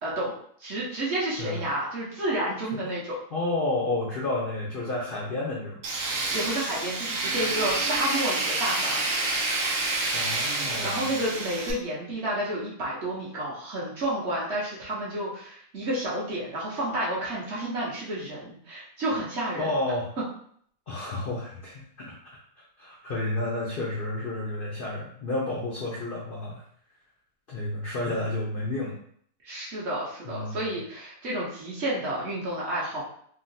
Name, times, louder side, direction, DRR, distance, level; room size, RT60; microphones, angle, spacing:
voice 1, 0.0-3.1 6.3-9.2 10.8-19.7 29.4-33.0, right 1 dB, 50° right, -6 dB, 1.0 m, -30 dB
voice 2, 3.3-5.8 10.1-11.2 19.6-20.1 20.9-22.1 22.8-26.6 27.5-29.0 30.2-30.7, left 2 dB, 65° left, -4 dB, 0.5 m, -31 dB
Tools, 5.8-11.7, right 2 dB, 75° right, 1.1 m, -28 dB
3.8 x 2.1 x 2.6 m, 0.63 s
omnidirectional pair, 1.6 m